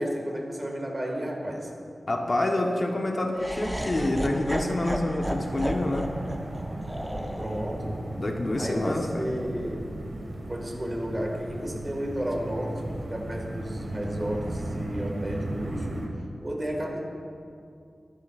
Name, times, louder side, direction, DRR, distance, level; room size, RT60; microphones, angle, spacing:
voice 1, 0.0-1.7 7.4-8.0 8.5-9.8 10.1-16.0 16.4-17.0, equal, 25° right, 1 dB, 1.7 m, -32 dB
voice 2, 2.1-6.1 8.2-9.3, left 1 dB, 35° left, 1 dB, 0.9 m, -27 dB
Laughter, 3.4-9.5, equal, 5° right, 0.7 m, -35 dB
sound 1, 5.2-16.1, right 1 dB, 65° right, 1.7 m, -36 dB
22.0 x 9.8 x 2.4 m, 2.5 s
wide cardioid pair, 120°, 0 cm